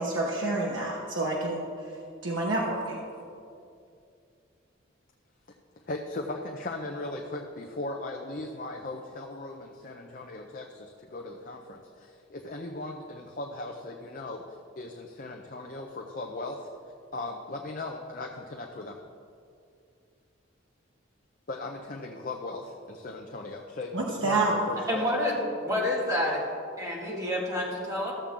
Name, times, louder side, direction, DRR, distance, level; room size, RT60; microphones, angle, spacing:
voice 1, 0.0-1.6 2.2-3.0 23.9-24.5, right 2 dB, 70° right, -3 dB, 1.1 m, -28 dB
voice 2, 5.9-14.4 14.8-16.7 17.1-19.0 21.5-25.1, left 2 dB, 40° left, 2 dB, 0.6 m, -38 dB
voice 3, 24.9-25.4 25.6-26.4 26.8-28.1, left 1 dB, 15° right, -5 dB, 2.0 m, -28 dB
14.0 x 7.2 x 3.7 m, 2.4 s
head